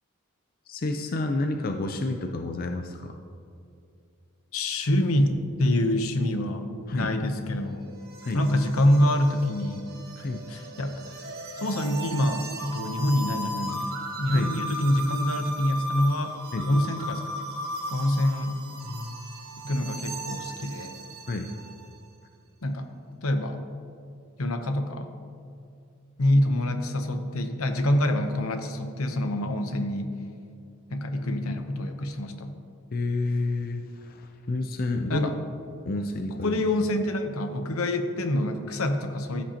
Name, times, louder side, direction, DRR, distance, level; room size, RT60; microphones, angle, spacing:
voice 1, 0.7-3.2 6.9-7.2 8.2-8.4 10.2-10.5 14.3-14.5 16.5-16.7 18.8-19.2 21.3-21.5 32.9-35.3 35.9-36.6, left 2 dB, 40° left, 5 dB, 0.5 m, -30 dB
voice 2, 4.5-7.8 8.3-9.9 10.5-10.9 11.6-16.3 16.7-17.2 17.9-18.6 19.6-21.0 22.6-22.9 23.2-23.6 24.4-25.1 26.2-30.1 30.9-32.5 35.1-35.3 36.4-39.4, left 1 dB, 80° left, 7 dB, 0.9 m, -26 dB
sound 1, 7.3-21.9, right 1 dB, 45° right, 1.2 m, -37 dB
15.0 x 8.3 x 2.9 m, 2.5 s
head